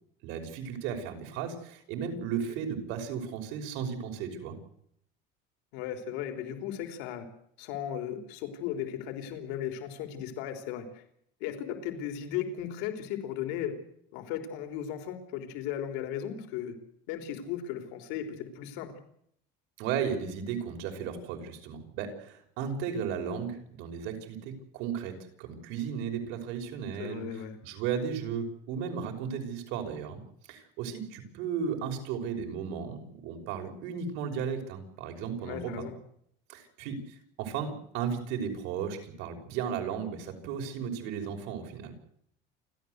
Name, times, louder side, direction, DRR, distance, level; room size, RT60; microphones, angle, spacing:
voice 1, 0.2-4.6 19.8-27.2 27.6-30.2 30.5-35.7 36.5-41.9, right 7 dB, 70° right, 4 dB, 5.9 m, -35 dB
voice 2, 5.7-7.3 7.6-11.0 11.4-13.8 14.1-16.8 17.1-18.9 27.0-27.6 35.4-36.0, left 10 dB, 80° left, 6 dB, 3.8 m, -36 dB
29.0 x 13.0 x 8.1 m, 0.69 s
cardioid pair, 170°, 21 cm